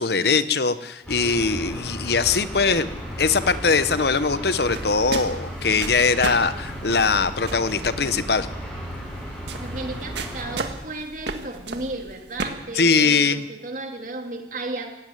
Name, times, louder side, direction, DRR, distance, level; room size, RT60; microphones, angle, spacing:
voice 1, 0.0-8.5 12.7-13.4, left 4 dB, 65° left, 13 dB, 1.0 m, -21 dB
sound 1, 1.0-10.6, equal, 5° left, 6.5 m, -34 dB
sound 2, 4.6-12.4, right 3 dB, 75° right, 1.9 m, -35 dB
voice 2, 9.6-14.9, right 2 dB, 45° right, 3 dB, 2.7 m, -34 dB
17.5 x 16.5 x 9.3 m, 1.0 s
head